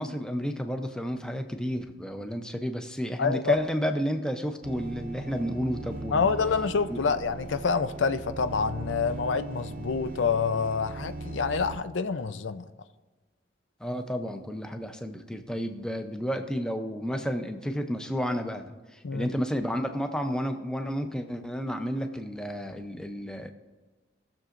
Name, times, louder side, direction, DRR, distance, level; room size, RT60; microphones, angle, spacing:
voice 1, 0.0-6.3 6.9-7.0 13.8-23.5, equal, 5° left, 6 dB, 0.6 m, -31 dB
voice 2, 3.2-3.6 6.1-12.7 19.0-19.3, left 5 dB, 85° left, 11 dB, 0.5 m, -27 dB
sound 1, 4.6-11.8, right 2 dB, 45° right, 0.6 m, -39 dB
18.5 x 6.8 x 2.5 m, 1.3 s
head